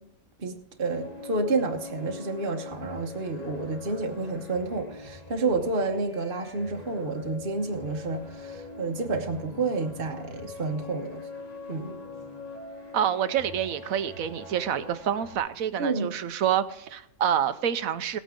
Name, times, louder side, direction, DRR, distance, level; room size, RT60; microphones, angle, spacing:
voice 1, 0.4-11.3 11.7-12.0 15.8-16.1, right 3 dB, 45° right, 2 dB, 1.2 m, -30 dB
sound 1, 0.8-15.4, left 3 dB, 30° left, 1.9 m, -42 dB
voice 2, 12.9-18.2, right 9 dB, 90° right, 12 dB, 1.2 m, -27 dB
18.0 x 9.2 x 3.7 m, 0.83 s
omnidirectional pair, 1.4 m